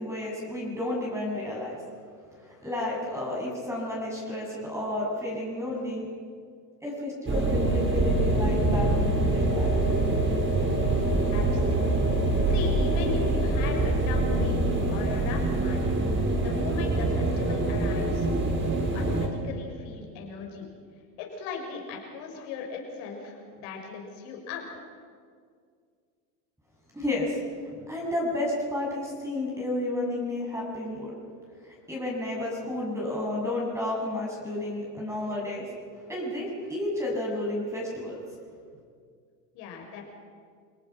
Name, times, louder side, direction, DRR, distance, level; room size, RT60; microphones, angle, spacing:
voice 1, 0.0-1.8 2.3-6.1 6.8-9.7 26.9-27.4 27.9-31.1 31.6-35.7 35.9-38.2, left 1 dB, 5° right, -3 dB, 7.5 m, -31 dB
sound 1, 7.3-19.3, right 2 dB, 25° right, 4.8 m, -25 dB
voice 2, 11.3-12.1 12.5-14.6 14.9-15.8 16.4-18.3 18.7-20.6 21.2-24.9 39.5-40.0, left 5 dB, 65° left, 1 dB, 6.6 m, -38 dB
28.5 x 19.0 x 6.1 m, 2.1 s
hypercardioid pair, 90°, 50 cm